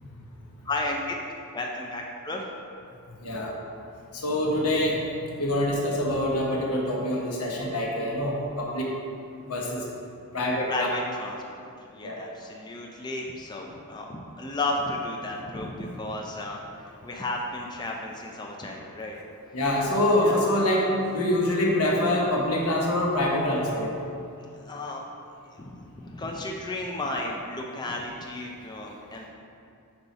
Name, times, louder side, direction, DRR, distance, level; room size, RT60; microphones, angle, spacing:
voice 1, 0.6-1.2 1.5-2.5 3.3-3.4 10.7-19.2 20.2-20.4 24.4-25.0 25.8-29.3, left 2 dB, 20° left, 0 dB, 0.4 m, -33 dB
voice 2, 4.2-5.0 5.4-8.9 9.5-9.8 10.3-10.9 12.0-12.2 19.5-23.9, left 1 dB, 85° left, -2 dB, 1.0 m, -25 dB
5.4 x 4.6 x 4.0 m, 2.5 s
head